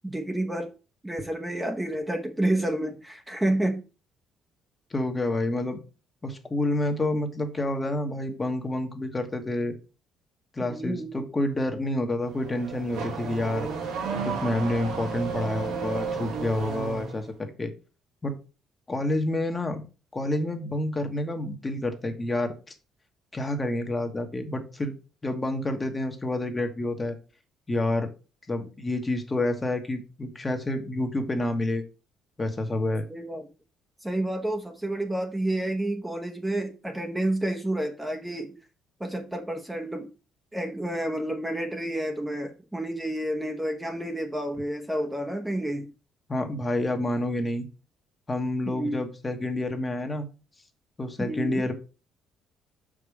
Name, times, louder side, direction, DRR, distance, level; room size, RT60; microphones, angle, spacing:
voice 1, 0.0-0.7 1.0-3.8 10.7-11.2 33.1-33.5 34.0-38.5 39.0-40.1 40.5-45.9 48.7-49.0 51.2-51.6, right 1 dB, 10° right, 1.0 m, -29 dB
voice 2, 4.9-5.8 6.2-9.7 10.5-13.7 14.2-17.7 18.2-18.4 18.9-19.8 20.1-22.5 23.3-24.9 25.2-27.2 27.7-28.1 28.5-31.8 32.4-33.1 46.3-47.7 48.3-50.3 51.0-51.7, left 1 dB, 20° left, 1.3 m, -28 dB
Car / Accelerating revving vroom, 12.2-17.2, right 5 dB, 80° right, 2.4 m, -32 dB
5.8 x 5.0 x 4.9 m
cardioid pair, 100°, 0 cm